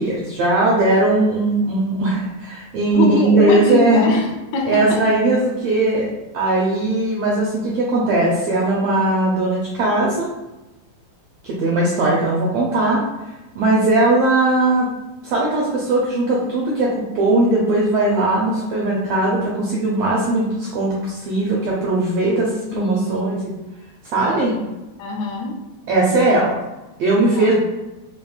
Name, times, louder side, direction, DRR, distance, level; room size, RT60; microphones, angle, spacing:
voice 1, 0.0-4.0 4.7-6.1 6.3-10.3 11.4-14.9 15.2-23.4 24.0-24.5 25.9-26.5 27.0-27.5, right 2 dB, 75° right, -4 dB, 1.4 m, -19 dB
voice 2, 2.9-5.0 22.7-23.3 24.2-24.6 25.0-25.6 27.3-27.5, left 2 dB, 80° left, 1 dB, 1.6 m, -23 dB
5.1 x 2.7 x 2.3 m, 1.0 s
omnidirectional pair, 3.4 m